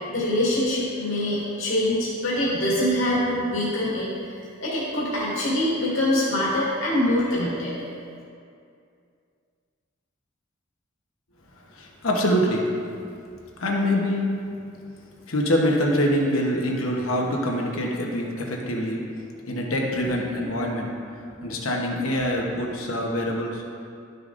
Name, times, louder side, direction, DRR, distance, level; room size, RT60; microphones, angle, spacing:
voice 1, 0.1-4.1 4.6-7.7, left 1 dB, 70° left, -7 dB, 2.0 m, -24 dB
voice 2, 11.7-12.7 13.6-14.3 15.3-19.0 19.5-21.0 21.4-23.6, equal, 90° left, 0 dB, 1.1 m, -24 dB
12.0 x 6.8 x 2.6 m, 2.4 s
head